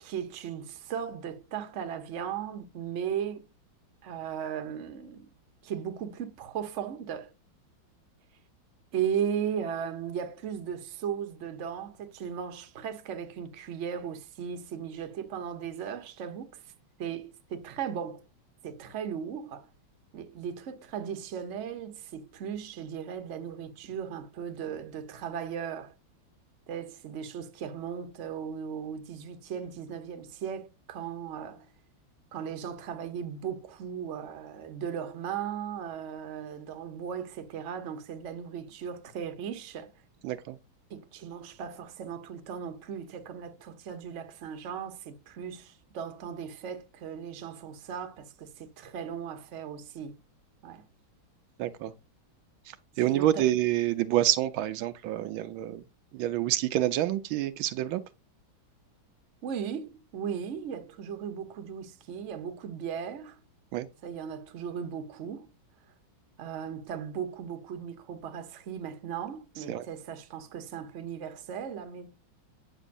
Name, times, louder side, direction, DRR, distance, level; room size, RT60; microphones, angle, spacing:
voice 1, 0.0-3.4 4.0-5.3 5.6-7.3 8.9-16.6 17.0-18.2 18.6-19.7 20.1-25.9 26.7-31.7 32.3-39.9 40.9-50.2 50.6-50.8 53.1-53.5 59.4-63.4 64.0-65.5 66.4-72.1, right 8 dB, 45° right, 1.0 m, -37 dB
voice 2, 40.2-40.6 51.6-51.9 52.7-55.8 56.1-58.0 63.7-63.9 69.7-69.9, right 13 dB, 80° right, 1.4 m, -28 dB
8.9 x 6.1 x 2.5 m
omnidirectional pair, 2.2 m